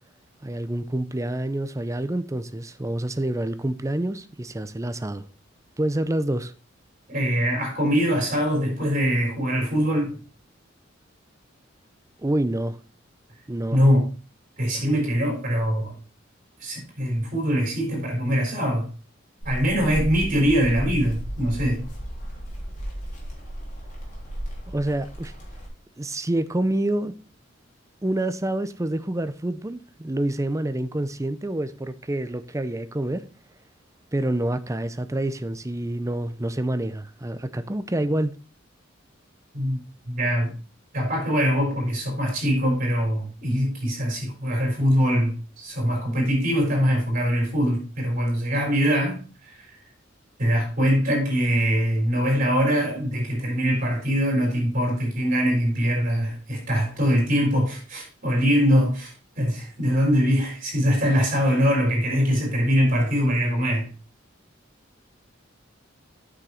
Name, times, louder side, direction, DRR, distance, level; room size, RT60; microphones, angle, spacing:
voice 1, 0.4-5.2 5.8-6.5 12.2-12.8 13.5-13.8 24.7-25.3 26.0-27.1 28.0-33.2 34.1-38.3, right 1 dB, 15° right, 0.6 m, -27 dB
voice 2, 7.1-10.2 13.7-14.1 14.6-16.0 16.6-18.9 19.4-21.9 39.5-39.8 40.1-40.6 40.9-49.8 50.4-63.9, equal, 45° right, 4.4 m, -23 dB
sound 1, 19.4-25.7, equal, 40° left, 3.1 m, -34 dB
8.3 x 6.2 x 4.3 m
head